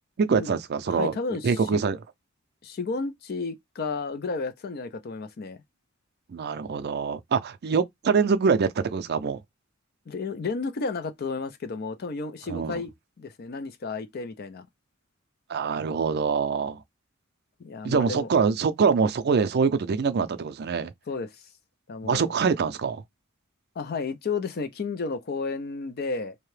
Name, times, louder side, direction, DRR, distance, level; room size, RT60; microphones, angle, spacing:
voice 1, 0.2-1.1 1.4-2.0 6.3-9.4 12.5-12.8 15.5-16.8 17.8-20.9 22.0-23.0, right 5 dB, 50° right, 0.4 m, -24 dB
voice 2, 0.9-1.8 2.6-5.6 10.1-12.9 13.2-14.7 17.6-18.3 21.1-21.5 21.9-22.4 23.8-26.4, left 4 dB, 50° left, 0.5 m, -32 dB
2.7 x 2.1 x 3.1 m
head